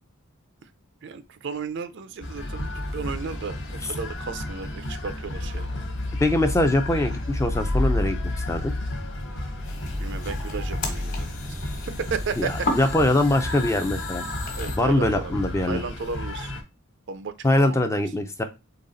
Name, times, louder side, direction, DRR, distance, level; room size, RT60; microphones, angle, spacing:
voice 1, 1.0-5.7 10.0-11.3 12.0-12.7 14.5-16.5 17.1-17.8, right 5 dB, 55° right, 0.4 m, -34 dB
sound 1, 2.2-16.6, left 1 dB, 55° left, 0.9 m, -31 dB
voice 2, 6.2-8.2 8.5-8.7 12.4-14.2 14.8-15.8 17.4-18.4, left 1 dB, 15° left, 0.4 m, -22 dB
sound 2, 9.6-14.8, left 2 dB, 35° left, 1.3 m, -35 dB
4.0 x 3.4 x 3.9 m
head